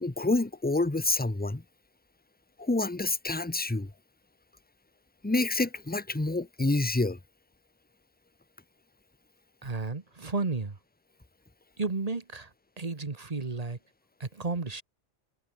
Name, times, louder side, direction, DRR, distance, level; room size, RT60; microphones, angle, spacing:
voice 1, 0.0-1.6 2.6-3.9 5.2-7.2, left 2 dB, 10° left, 1.0 m, -28 dB
voice 2, 9.6-10.8 11.8-12.5 12.8-13.8 14.2-14.8, right 3 dB, 30° right, 1.5 m, -32 dB
omnidirectional pair, 1.3 m